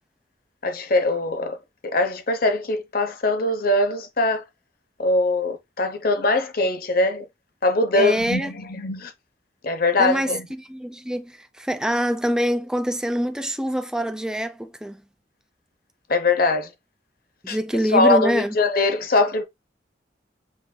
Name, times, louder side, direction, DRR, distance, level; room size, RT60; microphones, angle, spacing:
voice 1, 0.6-1.6 1.8-4.4 5.0-7.3 7.6-9.1 9.6-10.5 16.1-16.7 17.5-17.6 17.9-19.4, left 2 dB, 55° left, 0.8 m, -22 dB
voice 2, 8.0-8.5 10.0-15.0 17.4-18.6, equal, 5° right, 0.4 m, -25 dB
7.2 x 2.6 x 2.2 m
head